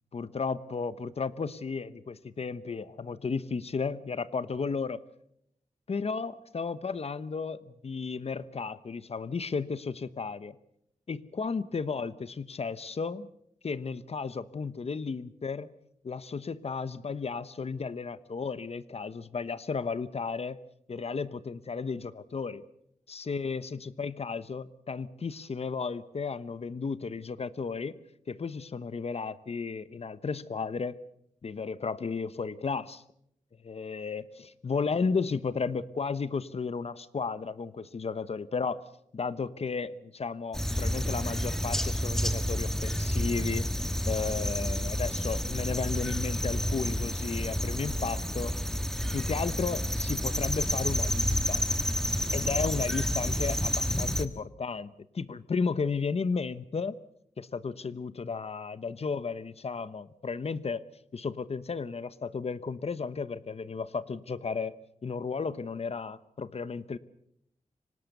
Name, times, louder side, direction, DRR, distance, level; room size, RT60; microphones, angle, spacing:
voice 1, 0.1-5.0 5.9-10.6 11.1-13.3 13.6-15.7 16.0-20.6 20.9-22.6 23.1-28.0 28.3-31.0 31.4-33.0 33.6-38.8 39.1-43.7 44.1-48.6 49.1-51.6 52.3-57.0 57.4-60.8 61.1-64.7 65.0-67.0, left 5 dB, 50° left, 16 dB, 1.0 m, -34 dB
sound 1, 40.5-54.3, equal, 5° left, 1.5 m, -30 dB
25.0 x 19.0 x 6.7 m, 0.73 s
wide cardioid pair, 100°, 13 cm